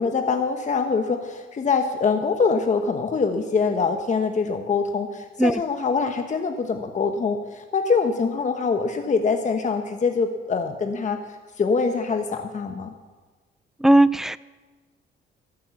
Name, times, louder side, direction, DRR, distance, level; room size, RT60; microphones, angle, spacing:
voice 1, 0.0-11.2 11.6-12.9, left 5 dB, 40° left, 5 dB, 1.0 m, -24 dB
voice 2, 13.8-14.4, right 1 dB, ahead, 18 dB, 0.4 m, -17 dB
13.0 x 8.8 x 7.1 m, 1.3 s
cardioid pair, 90°, 20 cm